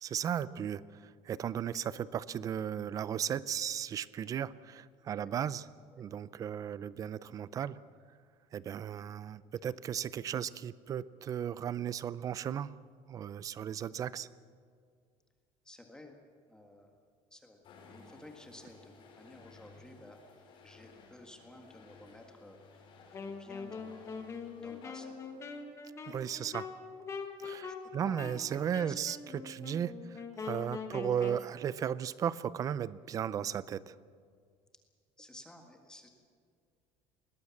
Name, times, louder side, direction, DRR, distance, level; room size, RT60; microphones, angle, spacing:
voice 1, 0.0-5.6 6.0-7.8 8.5-12.7 13.1-14.3 26.1-26.7 27.4-34.0, right 9 dB, 30° right, 18 dB, 0.5 m, -35 dB
voice 2, 15.6-16.2 16.5-17.0 17.3-17.6 17.9-20.2 20.6-22.9 23.4-24.1 24.6-25.2 27.7-28.2 28.8-29.0 35.2-36.1, left 1 dB, 5° left, 3 dB, 1.7 m, -54 dB
sound 1, 17.6-25.9, left 4 dB, 40° left, 4.7 m, -57 dB
Wind instrument woodwind instrument, 23.1-31.5, left 5 dB, 25° left, 1.6 m, -43 dB
21.5 x 19.0 x 7.2 m, 2.1 s
cardioid pair, 175°, 12 cm